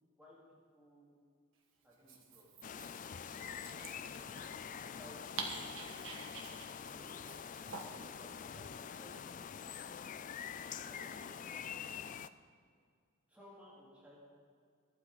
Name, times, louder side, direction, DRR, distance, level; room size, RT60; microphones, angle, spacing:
voice 1, 0.2-1.2 1.8-2.5 3.7-5.7 6.8-7.1 7.9-9.3 10.7-11.9 13.3-14.2, equal, 5° right, -7 dB, 3.1 m, -59 dB
Dog, 1.9-8.1, right 4 dB, 65° right, 1.6 m, -48 dB
sound 1, 2.6-12.3, left 7 dB, 40° left, 0.3 m, -46 dB
22.5 x 8.8 x 4.1 m, 2.2 s
head